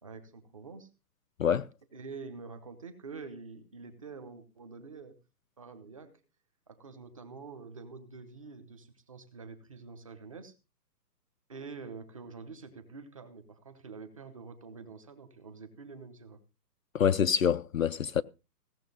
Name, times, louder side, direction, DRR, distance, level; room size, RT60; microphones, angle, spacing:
voice 1, 0.0-0.9 1.9-5.2 5.6-6.2 6.7-10.6 11.5-16.4, right 4 dB, 20° right, 1.0 m, -46 dB
voice 2, 16.9-18.2, left 8 dB, 55° left, 0.6 m, -26 dB
17.0 x 7.0 x 5.4 m
hypercardioid pair, 175°, 50 cm